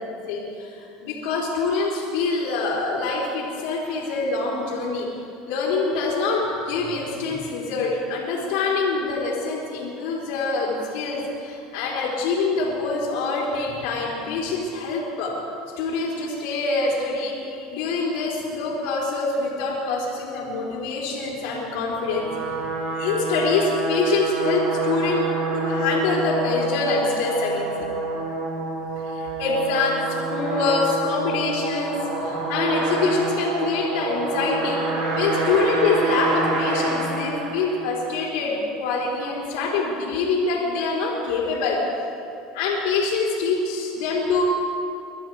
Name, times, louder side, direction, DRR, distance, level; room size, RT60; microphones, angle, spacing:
voice 1, 0.3-5.1 5.5-15.4 15.8-22.3 23.0-25.2 25.5-27.7 29.0-34.8 35.2-41.8 42.5-44.4, left 3 dB, 75° left, -4 dB, 3.6 m, -25 dB
sound 1, 21.8-38.1, right 2 dB, 65° right, 4.4 m, -27 dB
22.5 x 12.5 x 4.7 m, 2.6 s
supercardioid pair, 125°, 0 cm